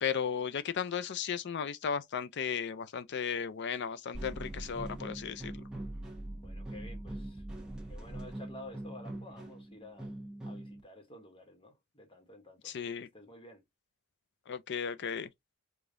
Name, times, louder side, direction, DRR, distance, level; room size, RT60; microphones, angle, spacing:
voice 1, 0.0-5.6 12.6-13.1 14.5-15.3, left 7 dB, 55° left, 0.5 m, -35 dB
sound 1, 4.1-10.8, right 1 dB, 5° right, 1.0 m, -42 dB
voice 2, 6.4-7.4 7.9-10.1 10.4-12.7 13.0-13.6, left 1 dB, 25° left, 1.1 m, -51 dB
5.0 x 2.3 x 2.6 m
head